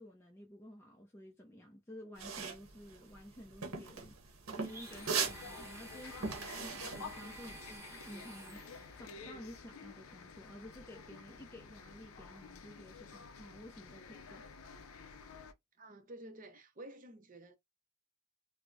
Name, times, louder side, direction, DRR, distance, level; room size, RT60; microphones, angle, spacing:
voice 1, 0.0-4.2 4.6-14.5, equal, 10° left, 0.3 m, -52 dB
sound 1, 2.2-7.7, right 5 dB, 70° right, 0.8 m, -39 dB
Domestic sounds home sounds, 4.6-9.1, right 2 dB, 15° right, 0.9 m, -52 dB
sound 2, 4.9-15.5, left 5 dB, 75° left, 0.5 m, -51 dB
voice 2, 15.8-17.6, right 1 dB, 40° right, 0.6 m, -51 dB
3.3 x 2.0 x 2.5 m
head